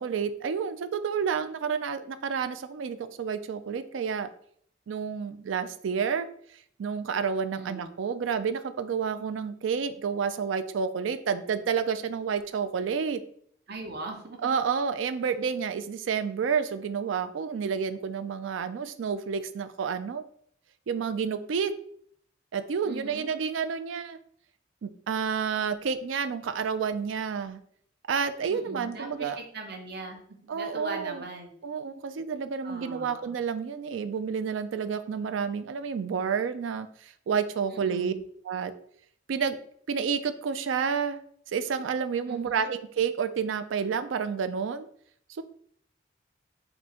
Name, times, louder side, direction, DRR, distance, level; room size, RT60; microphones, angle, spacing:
voice 1, 0.0-4.3 4.9-6.3 6.8-13.2 14.4-20.2 20.9-21.7 22.5-24.2 24.8-27.6 28.1-29.4 30.5-31.2 31.6-38.1 38.5-38.7 39.3-39.6 39.9-41.2 41.5-44.9 45.3-45.4, right 6 dB, 85° right, 12 dB, 0.4 m, -30 dB
voice 2, 7.5-7.8 13.7-14.6 22.8-23.3 28.5-30.2 30.4-31.5 32.6-33.4 37.7-38.2 42.3-42.7, right 2 dB, 55° right, 3 dB, 0.9 m, -40 dB
4.3 x 2.6 x 4.2 m, 0.62 s
head